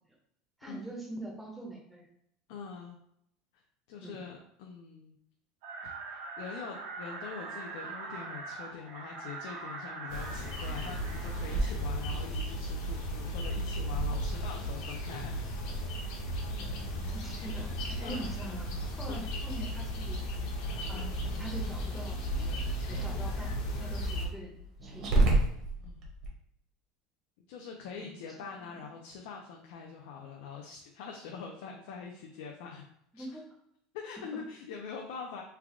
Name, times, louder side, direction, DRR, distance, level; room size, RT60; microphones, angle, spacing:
voice 1, 0.6-2.1 4.0-4.2 17.1-18.7 19.0-20.5 20.9-22.5 22.9-24.5 24.8-25.1 27.9-28.1 28.7-28.9 33.1-33.4, right 1 dB, ahead, -3 dB, 0.6 m, -43 dB
voice 2, 2.5-3.0 3.5-3.6 3.9-5.2 5.8-15.3 18.0-18.4 18.9-19.3 20.9-21.2 25.8-26.1 27.5-32.8 33.1-33.3 33.9-35.4, left 6 dB, 75° left, 0 dB, 0.5 m, -44 dB
sound 1, 5.6-11.8, right 3 dB, 75° right, 0.8 m, -43 dB
sound 2, 10.1-24.3, equal, 60° left, 0.9 m, -35 dB
Growling, 11.5-26.3, right 2 dB, 40° right, 0.9 m, -36 dB
3.3 x 2.3 x 3.6 m, 0.73 s
cardioid pair, 160°, 0 cm